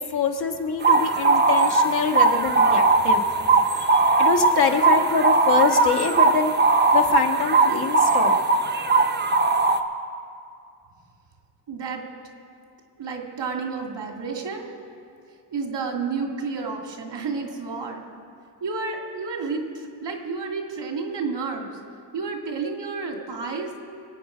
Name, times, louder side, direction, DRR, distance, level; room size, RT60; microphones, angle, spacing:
voice 1, 0.0-3.2 3.8-6.5 6.9-8.4, left 5 dB, 65° left, 3 dB, 1.4 m, -25 dB
sound 1, 0.8-9.8, right 3 dB, 25° right, 0.7 m, -19 dB
voice 2, 11.7-12.0 13.0-14.7 15.5-18.0 18.6-21.7 22.1-23.7, right 4 dB, 90° right, 2 dB, 2.2 m, -30 dB
24.5 x 9.0 x 5.0 m, 2.4 s
wide cardioid pair, 150°, 42 cm